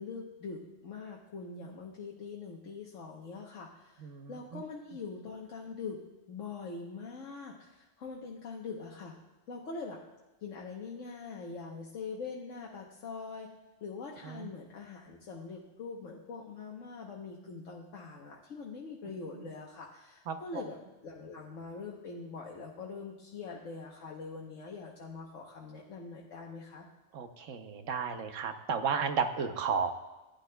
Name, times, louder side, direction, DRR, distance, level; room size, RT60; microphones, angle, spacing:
voice 1, 0.0-6.0 6.3-9.2 9.5-10.0 10.4-13.5 13.8-26.8, left 4 dB, 90° left, -2 dB, 1.4 m, -43 dB
voice 2, 4.0-4.6 14.2-14.5 20.3-20.4 27.1-29.9, right 6 dB, 85° right, 7 dB, 1.2 m, -33 dB
15.5 x 10.5 x 2.2 m, 1.1 s
omnidirectional pair, 1.3 m